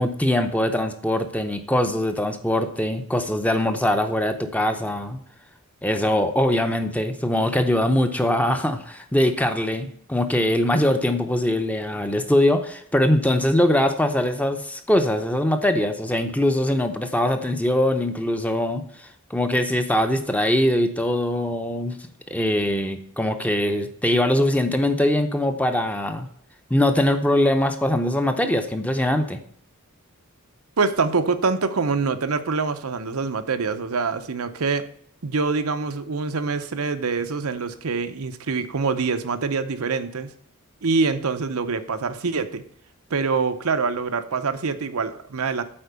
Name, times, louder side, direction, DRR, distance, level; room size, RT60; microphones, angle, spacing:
voice 1, 0.0-5.2 5.8-26.3 26.7-29.4, left 1 dB, 5° left, 7 dB, 0.6 m, -22 dB
voice 2, 30.8-34.8 35.2-40.3 40.8-42.6 43.1-45.6, right 4 dB, 85° right, 9 dB, 0.8 m, -25 dB
8.7 x 4.4 x 6.8 m, 0.63 s
head